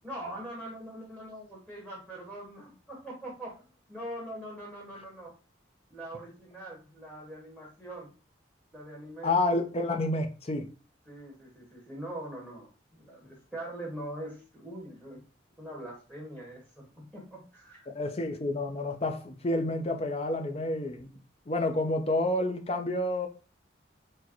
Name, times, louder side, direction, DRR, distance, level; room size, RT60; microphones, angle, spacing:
voice 1, 0.0-3.6 3.9-5.3 5.9-8.1 8.7-9.3 11.1-15.2 15.6-17.9, right 1 dB, 5° right, 1.2 m, -42 dB
voice 2, 9.2-10.7 17.9-21.1 21.5-23.3, left 2 dB, 30° left, 0.6 m, -29 dB
4.7 x 2.2 x 4.3 m
head